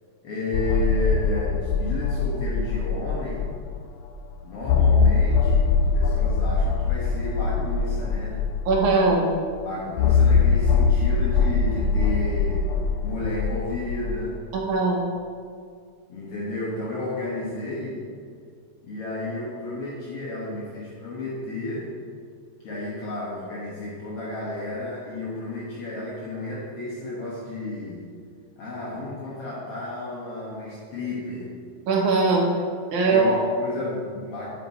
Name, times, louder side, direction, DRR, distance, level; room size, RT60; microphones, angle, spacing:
voice 1, 0.2-3.5 4.4-8.4 9.7-12.7 13.0-14.4 16.1-18.0 18.8-21.9 22.6-28.1 28.6-31.5 33.0-34.5, left 2 dB, 60° left, -6 dB, 2.0 m, -32 dB
sound 1, 0.5-3.8 4.1-4.2 4.6-9.2 10.0-14.3, left 5 dB, 85° left, 2.0 m, -22 dB
voice 2, 8.7-9.3 14.5-15.0 31.9-32.5 32.9-33.4, right 3 dB, 85° right, -1 dB, 2.7 m, -20 dB
10.0 x 6.0 x 4.2 m, 2.1 s
omnidirectional pair, 3.4 m